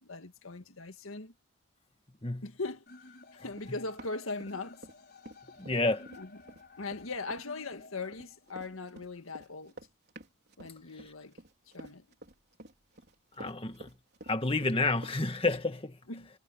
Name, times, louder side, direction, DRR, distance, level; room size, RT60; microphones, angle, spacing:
voice 1, 0.0-1.3 2.4-2.8 3.3-4.9 6.1-6.4 6.8-9.7 10.6-11.4 11.7-12.1 16.1-16.3, left 3 dB, 80° left, 1.8 m, -40 dB
sound 1, 2.9-8.8, left 3 dB, 50° left, 5.7 m, -54 dB
Run, 3.5-5.0 5.2-15.2, right 1 dB, 50° right, 4.2 m, -50 dB
voice 2, 5.6-6.1 13.4-13.9 14.3-16.0, left 2 dB, 25° left, 1.8 m, -30 dB
head